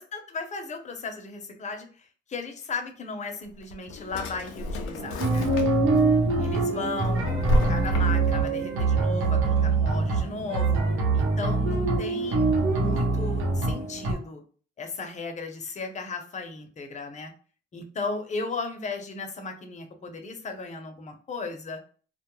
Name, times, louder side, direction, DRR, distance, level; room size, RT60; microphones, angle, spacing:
voice 1, 0.0-5.5 6.4-10.8 11.1-14.4 14.8-17.3 17.7-21.8, left 3 dB, 35° left, 5 dB, 0.6 m, -36 dB
Drawer open or close, 3.4-6.0 6.4-8.5, equal, 85° left, 0.5 m, -30 dB
sound 1, 5.0-14.1, right 3 dB, 85° right, 0.7 m, -24 dB
2.2 x 2.0 x 2.9 m, 0.41 s
cardioid pair, 90°, 20 cm